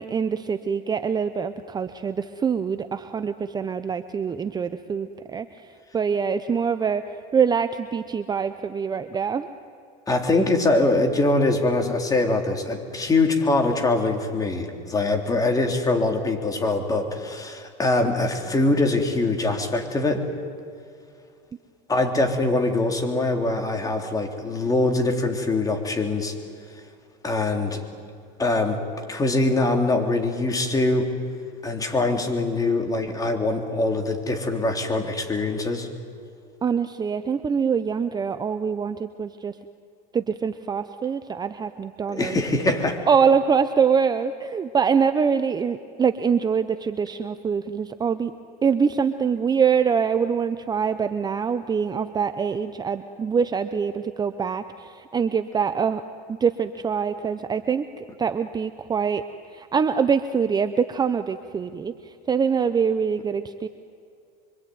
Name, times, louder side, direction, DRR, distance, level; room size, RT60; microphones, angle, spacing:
voice 1, 0.0-5.5 5.9-7.0 7.3-9.5 36.6-39.5 40.1-42.4 43.1-48.3 48.6-56.0 56.3-59.2 59.5-61.9 62.3-63.7, right 6 dB, 20° right, 10 dB, 0.8 m, -24 dB
voice 2, 10.1-20.2 21.9-26.4 27.2-27.8 28.4-28.8 29.1-31.1 31.6-35.9 42.1-43.0, left 2 dB, 15° left, 3 dB, 3.5 m, -23 dB
25.5 x 24.5 x 9.4 m, 2.4 s
supercardioid pair, 125°, 21 cm